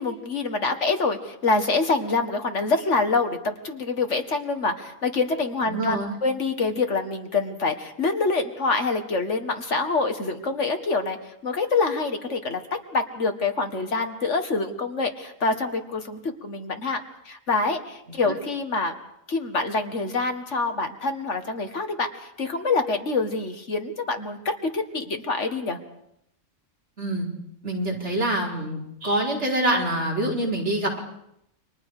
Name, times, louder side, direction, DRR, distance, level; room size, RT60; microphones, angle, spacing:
voice 1, 0.0-11.2 11.4-12.6 12.9-17.0 17.3-18.9 19.3-22.1 22.4-25.8, left 3 dB, 65° left, 6 dB, 2.1 m, -26 dB
voice 2, 5.7-6.2 27.0-27.3 27.6-31.0, right 1 dB, 60° right, -2 dB, 5.4 m, -25 dB
29.5 x 25.0 x 5.0 m, 0.77 s
omnidirectional pair, 1.3 m